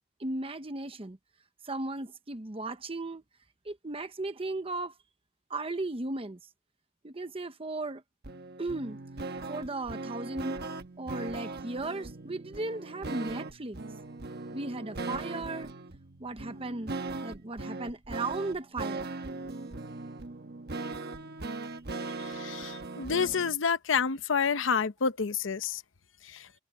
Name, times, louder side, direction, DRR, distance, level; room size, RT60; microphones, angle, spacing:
voice 1, 0.2-1.2 1.6-3.2 3.6-4.9 5.5-6.4 7.0-8.0 8.6-9.0 9.5-10.6 11.0-13.8 14.5-15.7 16.2-16.9 17.2-19.2, right 2 dB, 30° right, 1.0 m, -36 dB
sound 1, 8.2-23.5, right 3 dB, 55° right, 1.2 m, -39 dB
voice 2, 22.2-25.8 26.2-26.5, left 6 dB, 80° left, 0.8 m, -29 dB
head